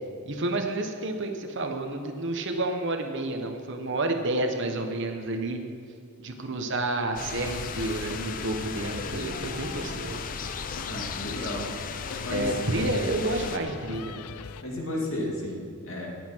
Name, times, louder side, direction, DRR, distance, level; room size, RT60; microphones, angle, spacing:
voice 1, 0.3-5.6 6.2-10.2 12.3-14.3, right 2 dB, 55° right, 5 dB, 1.2 m, -30 dB
sound 1, 7.1-13.6, left 5 dB, 40° left, 0.5 m, -36 dB
sound 2, 7.4-14.6, left 6 dB, 90° left, 0.5 m, -41 dB
voice 2, 10.8-11.7 12.2-12.6 14.6-16.1, left 1 dB, 65° left, -2 dB, 2.7 m, -33 dB
19.5 x 8.3 x 4.6 m, 2.3 s
head